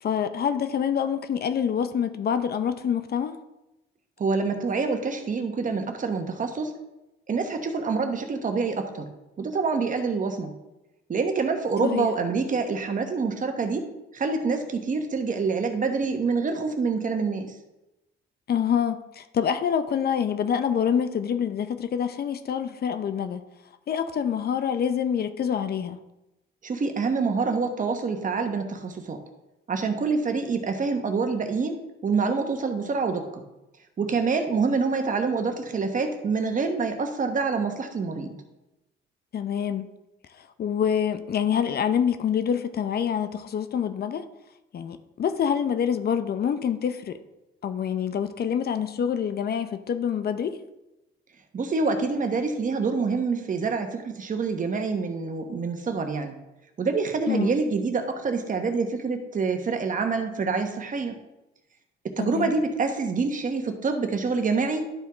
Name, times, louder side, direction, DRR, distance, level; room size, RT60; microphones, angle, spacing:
voice 1, 0.0-3.4 11.8-12.1 18.5-23.4 23.9-26.0 39.3-39.9 40.4-44.3 44.7-47.2 47.6-50.6 57.3-57.5 62.2-62.5, left 8 dB, 50° left, 0.6 m, -26 dB
voice 2, 4.2-6.7 7.3-9.1 9.4-10.5 11.1-17.6 26.6-29.2 29.7-33.4 34.0-38.4 51.5-56.3 56.8-61.1 62.0-64.9, right 4 dB, 40° right, 1.2 m, -26 dB
11.5 x 4.6 x 3.5 m
cardioid pair, 90°, 20 cm